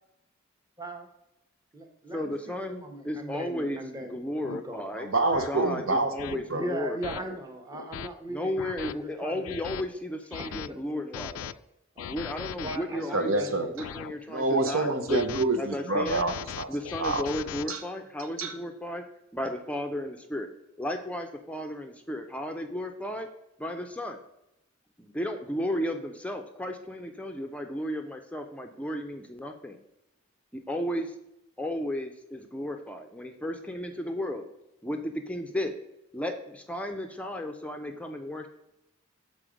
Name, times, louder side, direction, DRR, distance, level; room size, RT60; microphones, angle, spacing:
voice 1, 0.8-1.1 1.7-4.9 6.5-9.6 10.3-11.5 12.0-12.2 12.6-14.2, right 1 dB, 20° right, 5 dB, 0.8 m, -40 dB
voice 2, 2.1-3.8 4.1-5.1 5.5-7.3 8.3-11.4 12.1-15.2 15.6-16.2 16.7-19.0 19.3-20.5 20.8-23.3 23.6-24.2 25.0-29.8 30.5-31.1 31.6-34.4 34.8-35.7 36.1-38.5, left 1 dB, 5° left, 5 dB, 0.5 m, -34 dB
sound 1, 3.6-3.8 4.4-4.6 5.3-5.5 6.2-6.4 7.0-7.2 7.7-8.1 8.6-8.9 9.4-9.8 10.3-10.7 11.1-11.5 12.0-12.8 13.4-14.1 14.8-15.5 15.9-17.7, left 9 dB, 90° left, 0.3 m, -39 dB
voice 3, 5.0-6.7 13.1-13.7 14.3-16.7 17.0-17.2 17.7-17.8 18.4-18.5, right 2 dB, 85° right, 6 dB, 0.9 m, -27 dB
6.2 x 4.2 x 5.0 m, 0.87 s
head